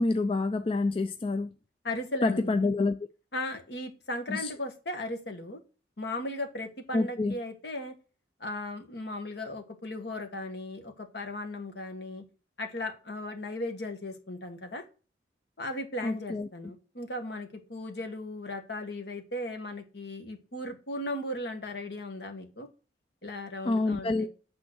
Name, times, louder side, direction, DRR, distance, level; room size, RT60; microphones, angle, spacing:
voice 1, 0.0-1.5 2.2-3.0 4.3-4.5 6.9-7.3 16.0-16.5 23.7-24.3, left 3 dB, 30° left, 0.4 m, -27 dB
voice 2, 1.8-2.5 3.3-5.6 6.0-7.9 8.4-12.2 12.6-14.8 15.6-22.7 23.2-24.3, left 1 dB, 65° left, 1.7 m, -37 dB
8.9 x 3.6 x 6.3 m
head